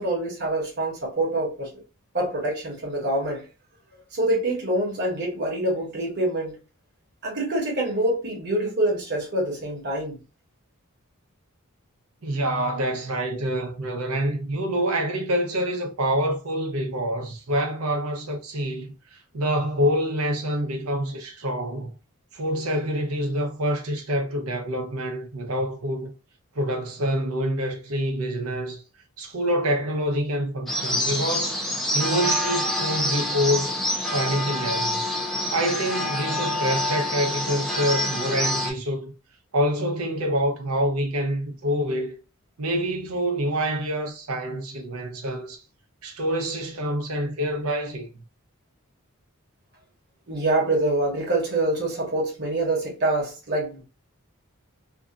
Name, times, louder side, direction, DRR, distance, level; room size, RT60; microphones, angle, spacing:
voice 1, 0.0-1.7 2.1-3.5 4.1-6.6 7.2-10.2 50.3-53.8, right 1 dB, 50° right, 1.1 m, -25 dB
voice 2, 12.2-21.9 22.3-26.1 26.5-28.8 29.2-31.6 31.9-33.7 34.1-35.1 35.5-39.1 39.5-42.1 42.6-45.6 46.0-48.2, equal, 75° right, 0.7 m, -26 dB
sound 1, 30.7-38.7, left 1 dB, ahead, 0.5 m, -26 dB
2.7 x 2.4 x 2.3 m
head